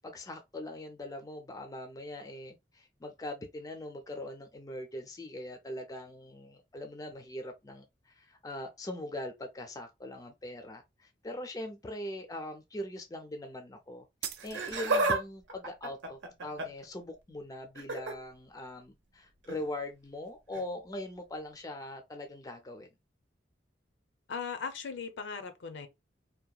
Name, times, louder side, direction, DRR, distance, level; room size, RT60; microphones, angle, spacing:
voice 1, 0.0-22.9, left 1 dB, 20° left, 0.4 m, -41 dB
sound 1, 14.2-15.2, right 10 dB, 55° right, 0.4 m, -42 dB
Laughter, 14.4-15.2 15.5-16.9 17.7-18.1 19.4-19.6 20.5-20.6, right 2 dB, 85° right, 0.7 m, -31 dB
voice 2, 24.3-25.9, left 5 dB, 75° left, 0.5 m, -38 dB
2.8 x 2.1 x 2.3 m
head